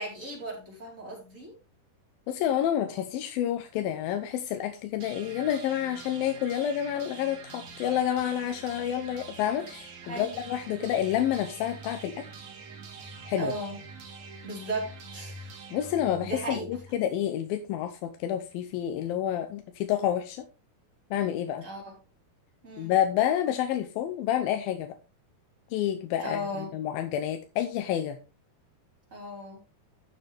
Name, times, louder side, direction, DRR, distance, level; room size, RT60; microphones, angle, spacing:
voice 1, 0.0-1.5 10.1-10.4 10.7-10.9 13.4-13.8 14.4-15.5 16.2-17.0 21.6-21.9 22.6-22.9 26.2-26.7 29.1-29.6, right 1 dB, 20° right, -2 dB, 4.2 m, -36 dB
voice 2, 2.3-12.3 13.3-13.5 15.7-20.4 21.1-21.6 22.8-25.0 25.7-28.2, left 10 dB, 75° left, 7 dB, 2.4 m, -29 dB
sound 1, 5.0-17.0, right 4 dB, 55° right, 2.7 m, -45 dB
13.5 x 6.7 x 3.4 m, 0.31 s
omnidirectional pair, 4.7 m